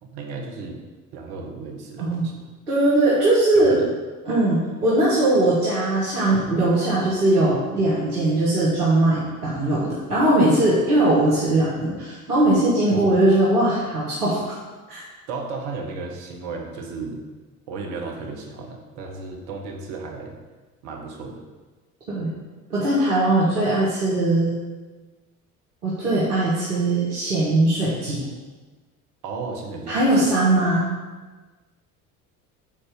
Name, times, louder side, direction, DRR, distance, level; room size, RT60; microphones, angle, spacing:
voice 1, 0.0-0.8 1.1-2.5 3.5-3.8 12.9-13.1 15.3-17.2 17.7-20.3 20.8-21.4 29.2-30.3, right 4 dB, 65° right, 1 dB, 1.5 m, -34 dB
voice 2, 2.7-3.8 4.3-14.4 14.9-15.0 22.1-22.3 22.7-24.6 25.8-28.2 29.9-30.8, right 1 dB, 90° right, -8 dB, 1.5 m, -20 dB
7.3 x 4.3 x 5.2 m, 1.3 s
hypercardioid pair, 60°, 45 cm